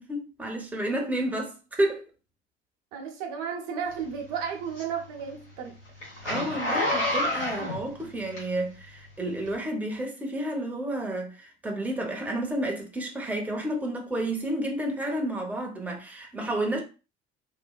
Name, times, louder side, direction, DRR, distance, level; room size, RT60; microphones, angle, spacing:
voice 1, 0.0-2.0 6.2-16.8, right 1 dB, 5° right, 0.8 m, -31 dB
voice 2, 2.9-5.8, right 7 dB, 60° right, 0.7 m, -33 dB
Zipper (clothing), 3.9-8.8 9.4-9.5, left 1 dB, 85° left, 1.3 m, -29 dB
3.1 x 2.2 x 2.3 m
figure-of-eight pair, 60°, 34 cm